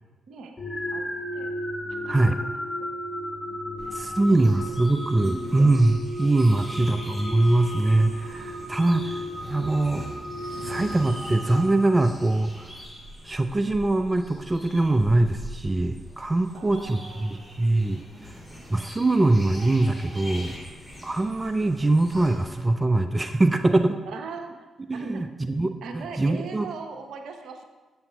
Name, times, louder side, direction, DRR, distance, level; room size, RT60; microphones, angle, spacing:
sound 1, 0.6-12.5, equal, 25° left, 1.2 m, -34 dB
voice 1, 2.0-2.9 3.8-4.2 4.4-5.7 6.5-6.7 8.8-9.1 16.5-17.6 18.1-18.6 24.1-24.7 24.9-25.3 25.8-27.6, right 4 dB, 70° right, 6 dB, 0.7 m, -40 dB
sound 2, 3.8-22.6, equal, 5° left, 2.7 m, -42 dB
voice 2, 3.9-10.1 10.6-12.7 13.2-18.0 18.7-20.5 21.0-24.0 24.9-26.7, right 2 dB, 25° right, 8 dB, 0.4 m, -23 dB
12.5 x 7.0 x 2.3 m, 1.3 s
hypercardioid pair, 45°, 0 cm